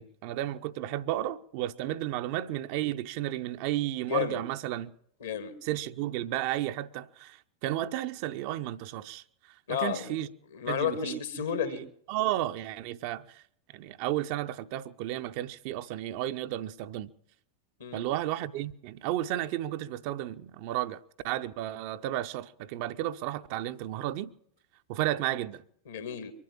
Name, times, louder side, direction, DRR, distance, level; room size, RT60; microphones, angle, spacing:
voice 1, 0.0-4.9 5.6-9.2 9.7-10.3 10.7-11.2 11.6-11.7 12.1-13.4 13.7-17.1 17.9-24.3 24.9-25.6, right 14 dB, 45° right, 0.6 m, -33 dB
voice 2, 4.0-4.4 5.2-5.6 9.7-10.2 10.5-11.8 17.8-18.1 25.8-26.3, left 8 dB, 65° left, 1.8 m, -32 dB
23.5 x 8.5 x 7.2 m
figure-of-eight pair, 90°, 0 cm